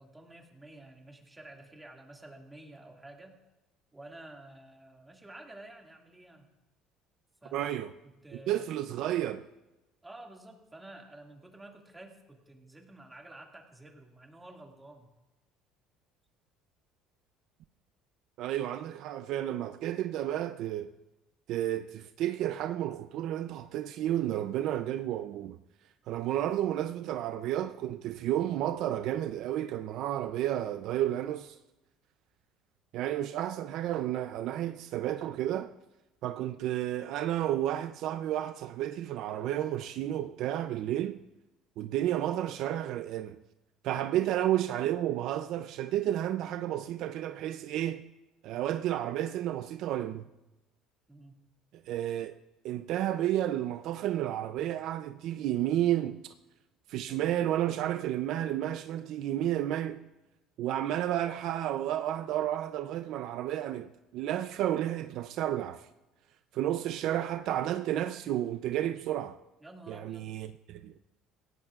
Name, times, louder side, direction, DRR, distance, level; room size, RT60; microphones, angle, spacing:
voice 1, 0.0-3.4 3.9-6.5 7.4-7.8 8.0-8.7 10.0-15.1 48.9-49.0 51.1-51.4 69.6-70.3, right 2 dB, 10° right, 2.1 m, -51 dB
voice 2, 7.5-7.9 8.5-9.4 18.4-20.9 21.5-25.6 26.1-31.6 32.9-35.7 36.2-41.2 41.8-43.4 43.8-48.0 48.4-50.3 51.9-52.3 52.6-56.2 56.9-60.0 60.6-65.9 66.5-69.4 69.9-70.9, right 12 dB, 60° right, 0.5 m, -31 dB
27.5 x 16.5 x 2.4 m
cardioid pair, 155°, 0 cm